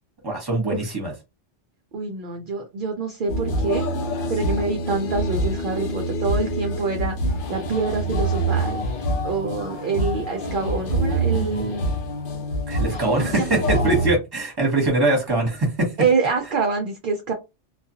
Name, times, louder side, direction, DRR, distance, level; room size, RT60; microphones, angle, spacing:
voice 1, 0.2-1.1 12.7-15.9, right 2 dB, 20° right, 1.1 m, -22 dB
voice 2, 1.9-3.9 4.3-8.8 9.2-11.9 12.9-13.6 16.0-17.3, right 4 dB, 55° right, 0.6 m, -26 dB
sound 1, 3.3-14.1, right 1 dB, 60° left, 0.7 m, -25 dB
2.3 x 2.3 x 2.7 m
omnidirectional pair, 1.2 m